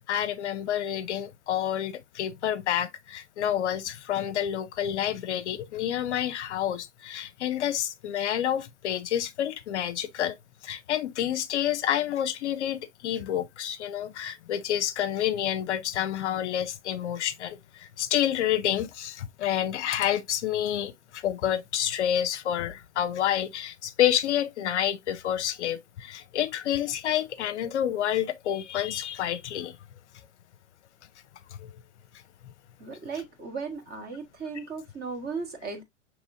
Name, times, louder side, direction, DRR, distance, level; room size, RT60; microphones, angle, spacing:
voice 1, 0.0-10.4 10.6-29.7 31.6-31.7, left 10 dB, 65° left, 0.6 m, -29 dB
voice 2, 32.8-35.8, right 4 dB, 25° right, 1.3 m, -36 dB
6.0 x 3.0 x 2.6 m
hypercardioid pair, 105°, 38 cm